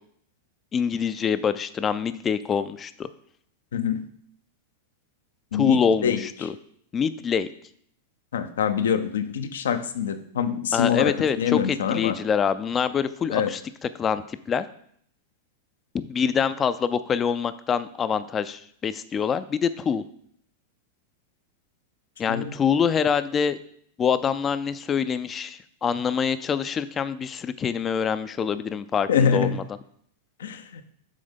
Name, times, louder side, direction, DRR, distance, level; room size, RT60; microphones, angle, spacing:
voice 1, 0.7-3.1 5.5-6.5 6.9-7.5 10.7-14.7 15.9-20.0 22.2-23.6 24.0-29.6, left 7 dB, 25° left, 13 dB, 0.4 m, -25 dB
voice 2, 3.7-4.0 5.5-6.2 8.3-12.2 13.3-13.5 22.3-22.5 29.1-29.6 30.4-30.8, left 7 dB, 70° left, 10 dB, 0.6 m, -25 dB
7.6 x 3.5 x 5.1 m, 0.64 s
figure-of-eight pair, 95°, 0 cm